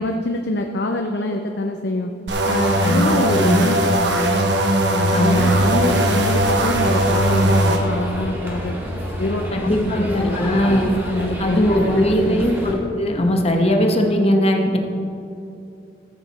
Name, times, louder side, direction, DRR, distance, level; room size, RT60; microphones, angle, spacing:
voice 1, 0.0-2.1 2.4-4.5 4.9-8.8 9.2-10.7 11.0-12.5, left 2 dB, 65° left, 4 dB, 0.6 m, -25 dB
sound 1, 2.3-7.8, right 1 dB, 70° right, 1.0 m, -19 dB
voice 2, 2.8-3.6 5.1-5.7 9.5-10.9 11.4-14.8, equal, 35° left, 3 dB, 1.0 m, -19 dB
sound 2, 5.3-12.7, equal, 15° right, 2.1 m, -29 dB
14.0 x 7.9 x 4.1 m, 2.6 s
head